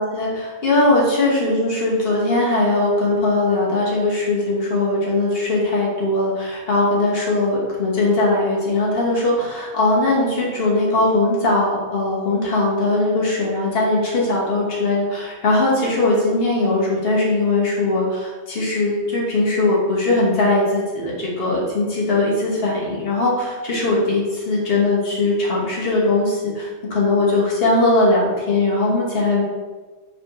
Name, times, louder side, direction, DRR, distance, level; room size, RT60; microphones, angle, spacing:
voice 1, 0.0-29.4, left 2 dB, 50° left, -5 dB, 1.4 m, -20 dB
4.9 x 3.5 x 3.0 m, 1.3 s
omnidirectional pair, 1.3 m